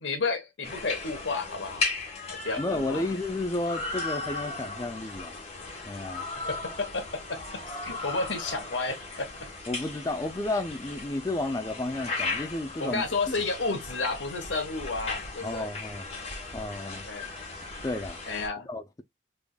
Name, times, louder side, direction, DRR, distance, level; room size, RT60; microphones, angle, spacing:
voice 1, 0.0-1.9 2.3-3.1 6.3-9.3 12.8-15.7 17.0-17.3 18.3-18.7, left 3 dB, 85° left, 1.2 m, -32 dB
sound 1, 0.6-18.5, left 3 dB, 35° left, 1.4 m, -37 dB
voice 2, 2.6-5.3 5.9-6.2 9.7-13.0 15.4-16.1 16.5-17.1 17.8-18.2 18.7-19.0, left 2 dB, 20° left, 0.4 m, -32 dB
3.5 x 3.4 x 2.3 m
head